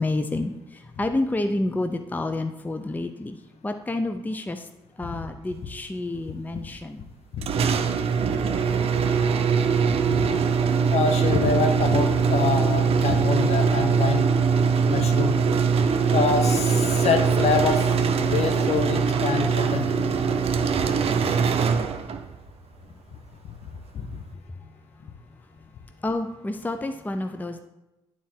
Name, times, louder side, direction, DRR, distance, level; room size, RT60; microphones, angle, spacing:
voice 1, 0.0-3.4 3.6-4.7 5.0-7.0 24.6-25.7 26.0-27.6, left 2 dB, 15° left, 7 dB, 0.6 m, -29 dB
sound 1, 7.4-22.4, right 6 dB, 50° right, 0.7 m, -22 dB
voice 2, 10.9-14.2 14.9-15.4 16.1-17.8 18.2-20.0 23.9-24.1, left 5 dB, 55° left, 6 dB, 1.0 m, -25 dB
9.1 x 4.3 x 4.4 m, 0.98 s
hypercardioid pair, 50°, 13 cm